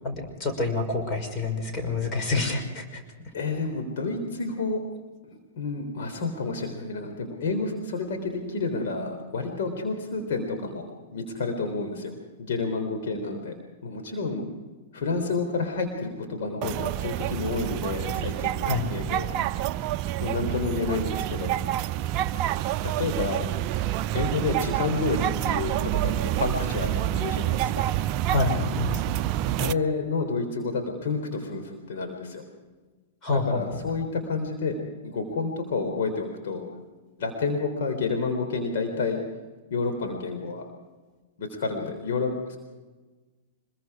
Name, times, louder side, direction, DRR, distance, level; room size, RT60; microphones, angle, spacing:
voice 1, 0.0-3.3 18.6-18.9 28.3-29.2 33.2-33.8, left 3 dB, 30° left, 5 dB, 5.8 m, -28 dB
voice 2, 3.3-4.8 5.6-13.5 13.8-14.4 14.9-19.4 19.6-19.7 20.2-21.5 22.8-23.5 24.1-27.9 29.6-32.4 33.3-34.8 35.0-36.7 37.2-39.2 39.7-40.6 41.4-42.6, left 4 dB, 60° left, 4 dB, 3.8 m, -30 dB
sound 1, 16.6-29.7, right 13 dB, 40° right, 0.6 m, -28 dB
25.5 x 22.0 x 4.9 m, 1.3 s
hypercardioid pair, 105°, 0 cm